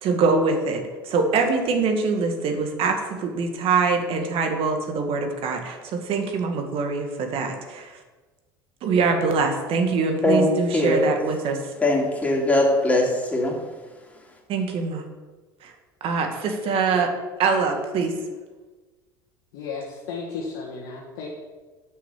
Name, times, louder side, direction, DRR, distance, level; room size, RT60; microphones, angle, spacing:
voice 1, 0.0-8.0 8.8-11.6 14.5-15.0 15.6-15.7 16.0-17.1 17.4-18.2, right 4 dB, 55° right, 4 dB, 1.8 m, -24 dB
voice 2, 10.2-11.1 11.8-13.5, left 1 dB, 10° left, -2 dB, 3.1 m, -21 dB
voice 3, 19.5-21.3, left 4 dB, 70° left, -3 dB, 1.7 m, -34 dB
7.6 x 6.4 x 7.3 m, 1.3 s
hypercardioid pair, 75°, 11 cm